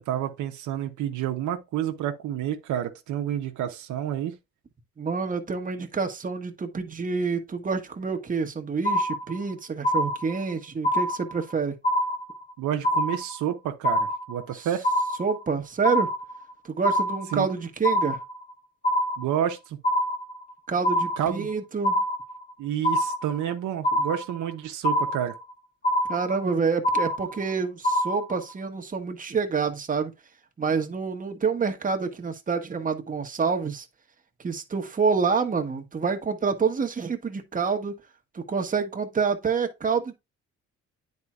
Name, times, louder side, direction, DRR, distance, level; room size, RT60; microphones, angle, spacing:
voice 1, 0.0-4.3 12.6-14.9 17.3-17.5 19.2-19.8 21.2-21.5 22.6-25.3, right 10 dB, 80° right, 0.8 m, -29 dB
voice 2, 5.0-11.8 14.5-14.7 15.2-16.1 16.6-18.2 20.7-22.0 26.1-30.1 30.6-33.9 34.4-37.9 38.3-40.1, right 5 dB, 25° right, 1.1 m, -27 dB
sound 1, 8.8-9.5 9.8-10.5 10.8-11.5 11.8-12.5 12.8-13.5 13.8-14.5 14.8-15.5 15.8-16.5 16.8-17.5 17.8-18.5 18.8-19.5 19.8-20.5 20.8-21.5 21.8-22.5 22.8-23.5 23.8-24.5 24.8-25.5 25.8-26.5 26.8-27.5 27.8-28.5, equal, 30° left, 1.4 m, -25 dB
9.6 x 4.3 x 2.4 m
cardioid pair, 90°, 30 cm